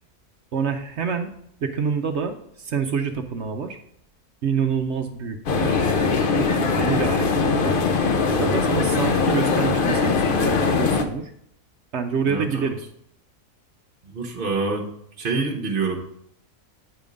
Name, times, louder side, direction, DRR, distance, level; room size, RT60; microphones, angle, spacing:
voice 1, 0.5-1.3 1.6-3.8 4.4-5.8 6.4-6.5 6.8-7.8 8.4-11.3 11.9-12.8, right 6 dB, 60° right, 5 dB, 0.8 m, -27 dB
sound 1, 5.5-11.0, left 4 dB, 50° left, 0.6 m, -21 dB
voice 2, 12.3-12.7 14.0-14.9 15.2-16.0, right 4 dB, 40° right, -1 dB, 1.0 m, -26 dB
9.0 x 3.6 x 5.1 m, 0.71 s
omnidirectional pair, 1.6 m